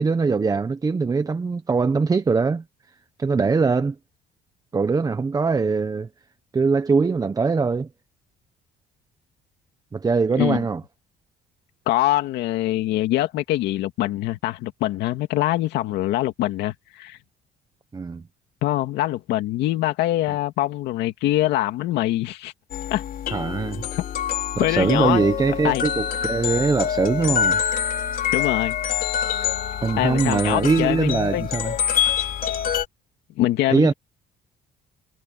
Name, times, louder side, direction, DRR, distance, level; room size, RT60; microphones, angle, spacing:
voice 1, 0.0-2.6 3.2-4.0 4.7-6.1 6.5-7.9 9.9-10.8 17.9-18.2 23.3-23.9 24.6-27.6 29.8-31.7 33.7-33.9, right 4 dB, 20° right, 0.9 m, -22 dB
voice 2, 11.9-17.2 18.6-22.5 22.9-23.0 24.6-25.3 25.6-25.8 28.3-28.8 30.0-31.5 33.4-33.9, left 15 dB, 85° left, 2.5 m, -23 dB
sound 1, 22.7-32.9, left 9 dB, 55° left, 4.1 m, -26 dB
cardioid pair, 110°, 17 cm